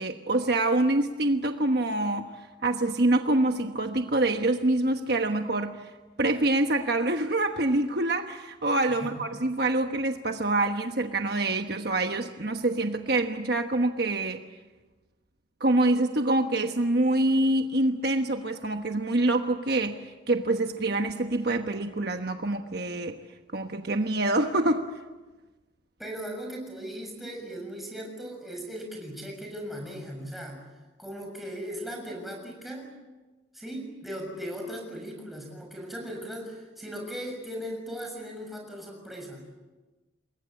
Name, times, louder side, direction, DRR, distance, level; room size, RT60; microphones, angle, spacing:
voice 1, 0.0-5.9 6.2-14.4 15.6-23.2 23.5-24.9, right 2 dB, 55° right, 5 dB, 1.2 m, -26 dB
voice 2, 26.0-30.6 31.0-32.9 33.5-39.4, equal, ahead, 0 dB, 6.8 m, -38 dB
28.5 x 21.5 x 8.5 m, 1.2 s
head